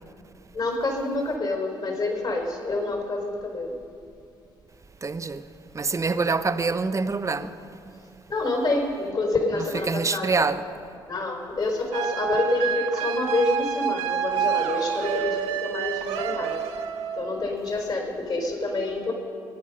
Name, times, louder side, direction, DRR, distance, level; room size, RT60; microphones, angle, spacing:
voice 1, 0.5-3.7 5.9-6.0 8.3-10.5 11.0-16.6 17.2-19.1, left 2 dB, 40° left, 4.3 m, -27 dB
voice 2, 5.0-5.4 5.7-7.6 9.7-10.6, right 4 dB, 25° right, 0.8 m, -25 dB
sound 1, 11.9-17.4, right 8 dB, 75° right, 1.0 m, -28 dB
20.5 x 9.7 x 5.4 m
hypercardioid pair, 55°, 11 cm